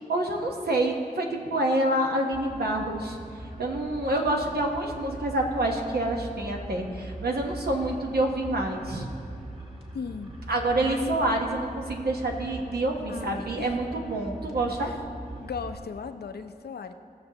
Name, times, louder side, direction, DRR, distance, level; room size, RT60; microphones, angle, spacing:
voice 1, 0.1-3.2 3.6-9.1 10.5-14.9, right 1 dB, 85° right, 1 dB, 1.2 m, -27 dB
sound 1, 2.3-15.8, right 1 dB, 35° right, 1.8 m, -41 dB
voice 2, 9.9-10.3 10.8-11.2 13.1-13.7 14.8-15.0 15.4-16.9, left 5 dB, 90° left, 8 dB, 0.5 m, -37 dB
18.0 x 6.6 x 2.9 m, 2.3 s
wide cardioid pair, 55°, 16 cm